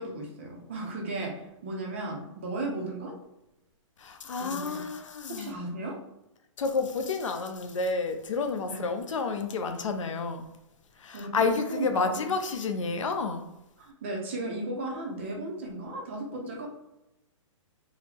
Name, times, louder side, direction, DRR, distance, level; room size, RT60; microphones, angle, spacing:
voice 1, 0.0-3.2 4.4-4.8 5.3-6.0 8.7-8.9 11.1-12.3 13.8-16.7, right 2 dB, 20° right, 0.5 m, -35 dB
voice 2, 4.0-5.6 6.6-10.5 11.0-13.5, left 4 dB, 70° left, 0.6 m, -30 dB
3.9 x 2.0 x 4.3 m
hypercardioid pair, 175°, 17 cm